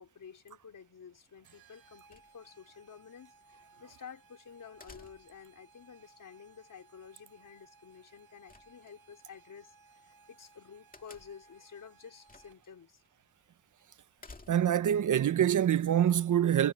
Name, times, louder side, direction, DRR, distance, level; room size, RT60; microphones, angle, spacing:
voice 1, 0.0-9.8 10.1-13.0, left 7 dB, 60° left, 3.8 m, -51 dB
sound 1, 1.4-12.8, right 3 dB, 75° right, 3.5 m, -62 dB
sound 2, 2.1-2.7 4.8-5.5 8.5-9.2 10.9-11.5 12.3-12.7 13.0-13.1 14.2-14.9, left 3 dB, 25° left, 2.0 m, -54 dB
voice 2, 14.5-16.7, right 10 dB, 60° right, 0.5 m, -25 dB
wide cardioid pair, 170°, 36 cm